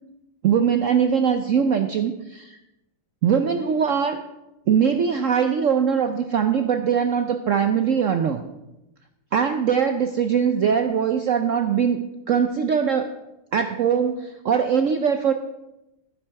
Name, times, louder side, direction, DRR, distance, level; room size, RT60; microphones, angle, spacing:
voice 1, 0.4-2.6 3.2-4.2 4.7-8.4 9.3-13.1 13.5-15.3, right 7 dB, 75° right, 7 dB, 0.7 m, -21 dB
12.0 x 10.0 x 4.6 m, 0.93 s
omnidirectional pair, 2.1 m